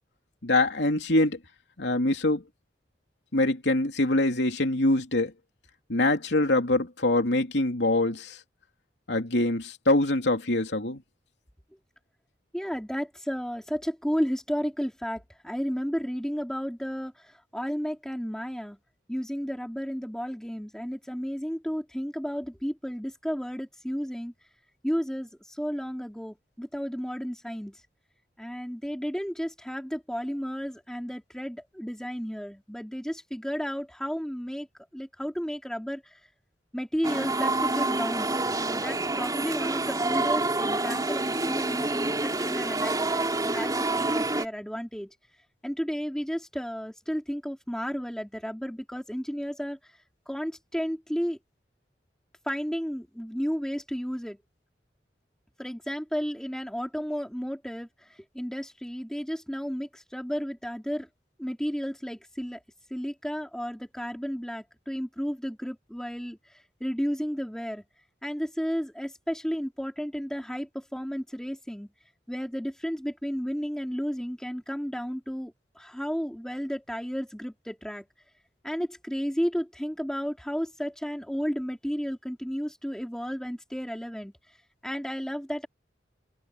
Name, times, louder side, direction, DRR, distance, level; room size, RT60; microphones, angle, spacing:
voice 1, 0.4-1.4 1.8-2.4 3.3-5.3 5.9-8.4 9.1-11.0, left 2 dB, 85° left, 2.9 m, -24 dB
voice 2, 12.5-18.8 19.1-24.3 24.8-27.8 28.4-34.7 34.9-36.2 36.7-42.9 43.4-45.1 45.6-50.0 50.3-51.4 52.4-54.4 55.6-61.1 61.4-62.6 62.9-67.8 68.2-71.9 72.3-78.1 78.6-84.3 84.8-85.7, equal, 5° left, 3.7 m, -33 dB
sound 1, 37.0-44.4, right 2 dB, 20° right, 3.6 m, -27 dB
head